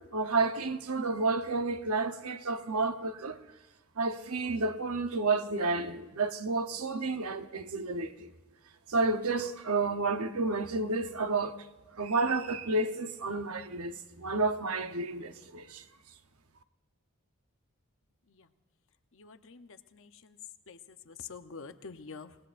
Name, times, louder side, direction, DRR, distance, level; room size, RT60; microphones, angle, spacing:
voice 1, 0.0-3.4 4.0-8.3 8.9-11.6 12.0-15.8, right 3 dB, 80° right, 0.9 m, -31 dB
voice 2, 19.1-20.4 20.7-22.4, left 5 dB, 60° left, 0.8 m, -47 dB
27.0 x 19.0 x 2.5 m
head